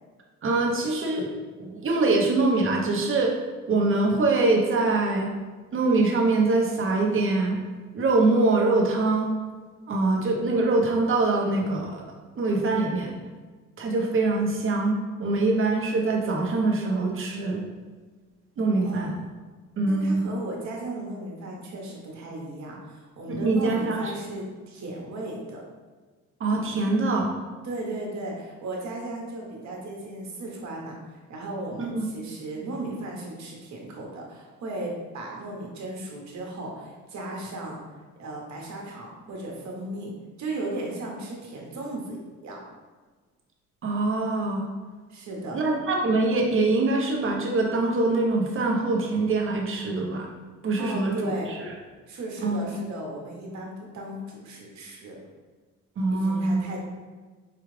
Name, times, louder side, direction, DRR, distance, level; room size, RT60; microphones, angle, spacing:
voice 1, 0.4-1.3 1.6-3.4 3.7-5.3 5.7-7.6 7.9-9.3 9.9-13.1 13.8-17.6 18.6-19.1 19.8-20.3 23.2-24.1 26.4-27.3 31.8-32.0 43.8-44.7 45.5-50.3 50.6-51.6 52.4-52.7 56.0-56.6, right 2 dB, 45° right, 0 dB, 0.8 m, -24 dB
voice 2, 18.8-19.3 19.9-25.6 27.6-37.8 38.2-40.1 40.4-42.6 45.1-45.6 50.8-51.5 52.1-55.2 56.1-56.8, right 2 dB, 65° right, -1 dB, 1.1 m, -36 dB
4.9 x 2.4 x 3.2 m, 1.4 s
cardioid pair, 90°, 30 cm